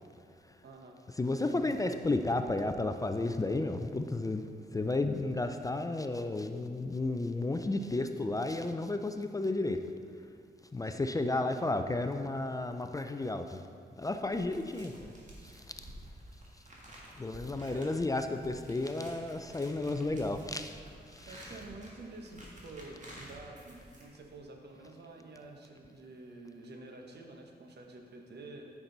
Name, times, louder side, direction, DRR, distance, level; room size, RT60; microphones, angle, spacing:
voice 1, 0.6-1.0 10.8-11.1 17.7-17.9 21.3-28.7, right 2 dB, 70° right, 2 dB, 1.0 m, -49 dB
voice 2, 1.2-4.4 4.7-9.8 10.7-13.6 14.0-15.1 15.4-15.9 17.2-20.8 21.1-21.4, left 2 dB, 20° left, 7 dB, 0.4 m, -32 dB
sound 1, 14.2-24.4, right 1 dB, 45° right, 1.7 m, -52 dB
9.2 x 6.0 x 3.9 m, 2.3 s
wide cardioid pair, 95°, 18 cm